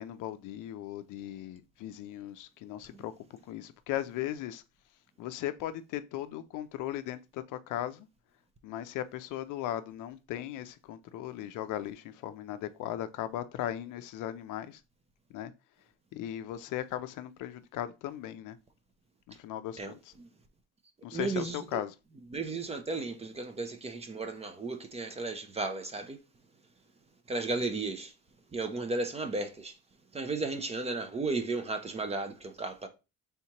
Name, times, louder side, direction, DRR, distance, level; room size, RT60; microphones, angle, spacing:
voice 1, 0.0-3.1 3.5-4.6 5.2-8.1 8.6-14.8 15.3-15.5 16.1-18.6 19.4-20.1 21.0-21.9, left 12 dB, 65° left, 0.5 m, -37 dB
voice 2, 21.1-21.8 22.3-26.2 27.3-28.1 28.5-29.7 30.1-32.9, right 3 dB, 20° right, 0.5 m, -34 dB
4.2 x 3.5 x 2.9 m
cardioid pair, 135°, 34 cm